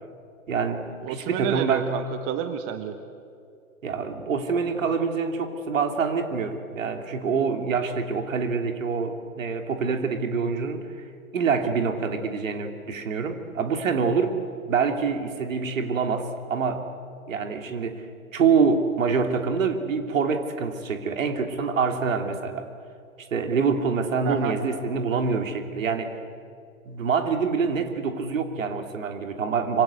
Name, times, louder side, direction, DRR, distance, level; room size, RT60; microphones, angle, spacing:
voice 1, 0.5-1.9 3.8-10.9 11.3-14.4 14.7-16.9 17.3-18.0 18.3-22.7 23.3-26.1 26.8-29.8, right 5 dB, 65° right, 5 dB, 3.1 m, -26 dB
voice 2, 1.0-3.0 24.2-24.6, right 9 dB, 30° right, 9 dB, 1.5 m, -29 dB
26.0 x 25.0 x 8.2 m, 2.4 s
figure-of-eight pair, 105°, 43 cm